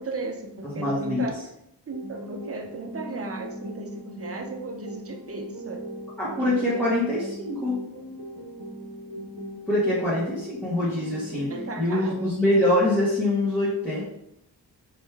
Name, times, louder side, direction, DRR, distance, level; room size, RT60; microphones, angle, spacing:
voice 1, 0.0-1.4 1.9-5.9 6.4-6.9 9.9-10.1 11.5-12.4, right 2 dB, 35° right, 2 dB, 0.7 m, -36 dB
voice 2, 0.6-1.3 6.2-7.8 9.7-11.5 11.8-14.0, left 1 dB, 5° left, -11 dB, 1.4 m, -24 dB
sound 1, 1.9-11.9, right 1 dB, 55° right, 1.0 m, -39 dB
4.2 x 3.2 x 3.4 m, 0.79 s
wide cardioid pair, 105°, 43 cm